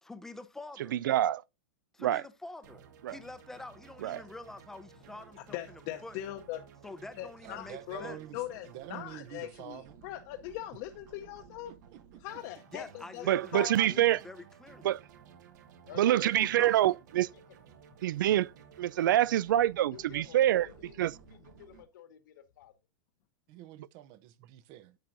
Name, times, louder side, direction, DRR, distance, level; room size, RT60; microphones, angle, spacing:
voice 1, 0.0-1.0 1.9-2.8 3.1-6.2 6.8-8.2 12.7-14.9 16.0-16.9, left 2 dB, 5° left, 0.6 m, -46 dB
voice 2, 0.9-1.4 2.0-2.2 3.0-3.1 4.0-4.2 13.3-14.2 14.8-15.0 16.0-17.3 18.0-18.5 18.8-20.7 21.0-21.1, right 13 dB, 85° right, 0.4 m, -26 dB
sound 1, 2.6-21.8, right 7 dB, 65° right, 1.4 m, -56 dB
voice 3, 5.5-6.6 7.2-11.7 12.2-13.2 13.5-14.0, left 14 dB, 45° left, 0.8 m, -41 dB
voice 4, 7.4-10.0 11.7-12.4 23.5-25.0, right 13 dB, 40° right, 0.7 m, -48 dB
voice 5, 15.7-16.3 17.3-17.4 17.9-18.0 19.8-22.7, left 10 dB, 75° left, 1.5 m, -52 dB
10.5 x 7.4 x 2.6 m
supercardioid pair, 160°, 10 cm